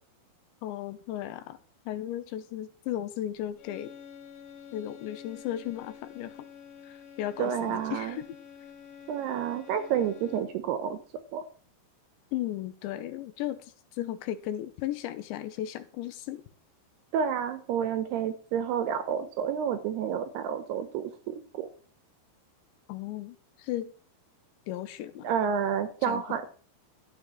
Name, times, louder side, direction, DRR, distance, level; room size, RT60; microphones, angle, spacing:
voice 1, 0.6-1.6 1.9-3.9 4.7-6.5 6.8-8.4 12.3-16.4 22.9-23.9 24.7-25.3 26.0-26.2, left 12 dB, 80° left, 11 dB, 2.9 m, -35 dB
sound 1, 3.6-10.7, left 8 dB, 45° left, 2.2 m, -49 dB
voice 2, 7.4-8.2 9.1-11.0 11.3-11.4 17.1-21.7 25.2-26.4, right 8 dB, 70° right, 10 dB, 2.7 m, -30 dB
13.5 x 4.9 x 8.8 m, 0.43 s
omnidirectional pair, 5.5 m